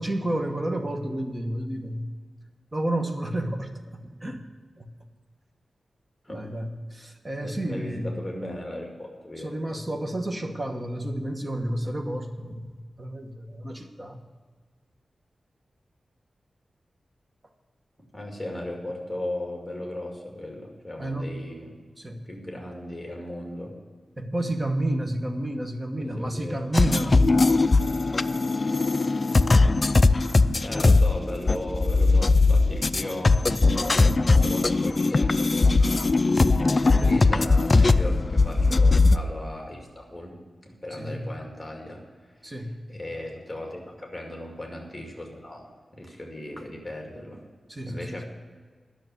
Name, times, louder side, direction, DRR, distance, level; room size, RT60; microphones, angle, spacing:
voice 1, 0.0-2.1 2.7-4.4 4.8-4.9 6.3-8.1 9.4-14.2 21.0-21.3 22.0-22.2 24.2-27.2 33.4-33.6 37.0-37.2 41.0-41.3 42.4-42.7 46.6-46.7 47.7-48.2, right 1 dB, 20° right, 4 dB, 1.2 m, -30 dB
voice 2, 7.4-9.5 18.1-21.8 22.2-23.8 26.0-27.1 30.6-33.4 33.6-36.1 37.0-42.0 42.4-45.7 45.9-47.5 47.9-48.2, left 1 dB, 10° left, 0 dB, 2.3 m, -37 dB
sound 1, 26.7-39.2, left 3 dB, 35° left, 0.3 m, -20 dB
10.5 x 6.6 x 9.3 m, 1.5 s
wide cardioid pair, 145°, 0 cm